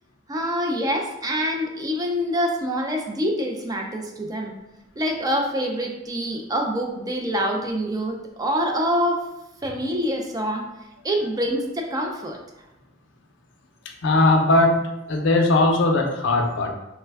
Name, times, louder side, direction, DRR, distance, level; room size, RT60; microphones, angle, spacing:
voice 1, 0.3-4.5 5.0-9.3 9.6-10.7 11.0-12.4, equal, 20° right, 2 dB, 0.3 m, -25 dB
voice 2, 14.0-14.8 15.1-16.7, left 2 dB, 65° left, 3 dB, 0.5 m, -19 dB
3.2 x 2.1 x 3.3 m, 0.94 s
head